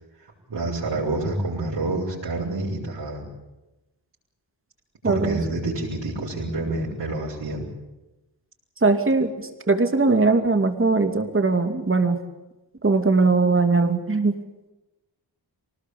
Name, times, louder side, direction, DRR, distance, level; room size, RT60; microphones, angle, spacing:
voice 1, 0.5-3.3 5.0-7.6, right 2 dB, 65° right, -6 dB, 6.6 m, -28 dB
voice 2, 5.0-5.4 8.8-12.2 12.8-14.4, right 3 dB, 30° right, 7 dB, 2.7 m, -20 dB
25.0 x 19.5 x 8.6 m, 1.0 s
wide cardioid pair, 125°, 44 cm